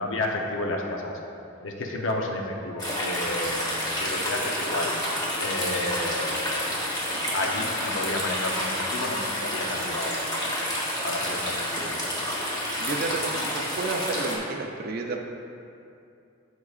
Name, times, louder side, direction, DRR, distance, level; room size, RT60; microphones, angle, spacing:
voice 1, 0.0-4.9 5.4-6.6 7.3-10.5 11.0-12.0, left 2 dB, 75° left, 1 dB, 0.7 m, -31 dB
sound 1, 2.8-14.4, equal, 20° left, 1.2 m, -29 dB
voice 2, 12.8-15.2, right 3 dB, 45° right, 1 dB, 0.4 m, -31 dB
13.0 x 4.8 x 2.4 m, 2.6 s
head